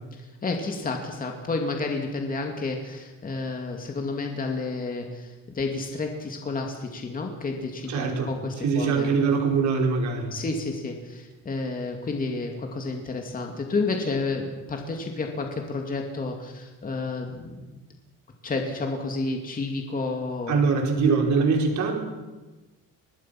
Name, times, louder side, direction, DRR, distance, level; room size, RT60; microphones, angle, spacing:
voice 1, 0.1-9.1 10.3-17.8 18.4-20.6, left 3 dB, 25° left, 2 dB, 2.4 m, -31 dB
voice 2, 7.9-8.3 8.6-10.3 20.5-22.0, right 5 dB, 60° right, 1 dB, 4.9 m, -23 dB
25.0 x 20.0 x 5.9 m, 1.1 s
cardioid pair, 160°, 33 cm